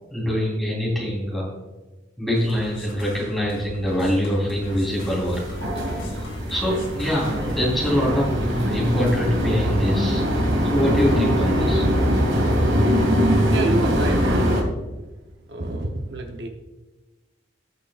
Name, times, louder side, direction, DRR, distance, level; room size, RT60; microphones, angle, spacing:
voice 1, 0.1-1.5 2.2-5.4 6.5-10.3 10.7-11.9, equal, ahead, -5 dB, 3.4 m, -24 dB
sound 1, 2.3-7.7, left 2 dB, 85° left, 2.0 m, -41 dB
sound 2, 4.6-14.6, equal, 85° right, 2.4 m, -22 dB
voice 2, 13.0-15.0 15.5-16.5, right 2 dB, 65° right, 3 dB, 0.8 m, -29 dB
18.5 x 6.6 x 2.4 m, 1.1 s
head